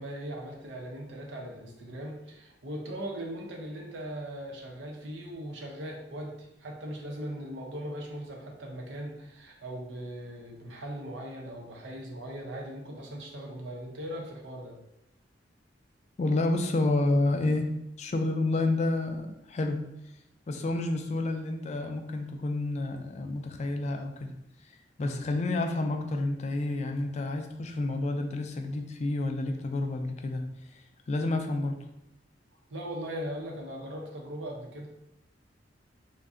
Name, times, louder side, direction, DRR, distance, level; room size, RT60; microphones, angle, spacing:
voice 1, 0.0-14.8 25.0-25.2 32.7-34.9, right 1 dB, 85° right, 0 dB, 0.7 m, -39 dB
voice 2, 16.2-19.9 20.5-24.3 25.0-30.5 31.1-31.9, left 2 dB, 40° left, 5 dB, 0.3 m, -29 dB
2.5 x 2.2 x 3.6 m, 0.84 s
head